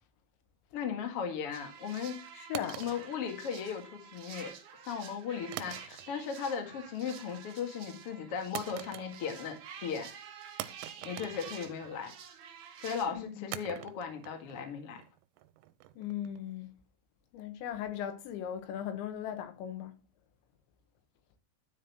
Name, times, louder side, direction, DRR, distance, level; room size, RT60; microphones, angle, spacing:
voice 1, 0.7-2.2 2.8-4.5 4.8-10.1 10.6-10.7 11.0-12.1 12.8-15.0, left 7 dB, 55° left, 1.6 m, -37 dB
sound 1, 1.5-13.1, right 7 dB, 70° right, 1.9 m, -49 dB
voice 2, 2.4-2.8 13.1-13.5 16.0-16.7 17.3-19.9, left 10 dB, 70° left, 3.3 m, -38 dB
sound 2, 2.5-3.9 5.5-6.4 6.7-7.1 8.5-9.5 9.8-9.9 10.6-12.1 13.5-16.5, right 15 dB, 90° right, 3.3 m, -45 dB
13.0 x 5.5 x 6.0 m
omnidirectional pair, 5.8 m